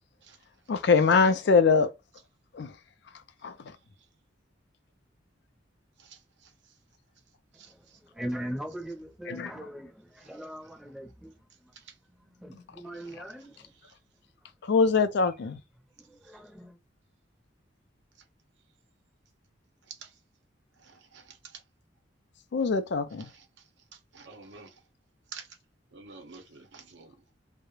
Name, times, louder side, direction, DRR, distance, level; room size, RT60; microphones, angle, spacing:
voice 1, 0.7-1.9 2.5-2.7 3.4-3.6 9.3-9.7 14.6-15.6 22.5-23.3, left 5 dB, 65° left, 0.4 m, -23 dB
voice 2, 8.1-11.3 12.1-13.5 16.1-16.8, equal, ahead, 0.6 m, -40 dB
voice 3, 20.8-21.2 24.1-24.7 25.3-25.5 25.9-27.1, right 5 dB, 70° right, 0.7 m, -48 dB
2.3 x 2.0 x 3.0 m
head